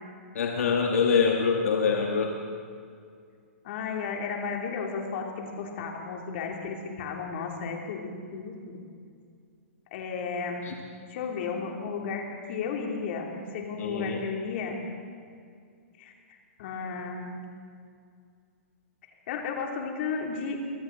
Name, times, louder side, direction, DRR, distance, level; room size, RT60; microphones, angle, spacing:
voice 1, 0.3-2.3 10.7-10.8 13.8-14.2, left 5 dB, 80° left, 2 dB, 1.5 m, -25 dB
voice 2, 3.6-8.8 9.9-10.6 11.1-14.8 16.0-16.1 16.6-17.3 19.3-20.6, left 5 dB, 50° left, 1 dB, 3.0 m, -33 dB
23.0 x 15.0 x 4.0 m, 2.2 s
hypercardioid pair, 140°, 8 cm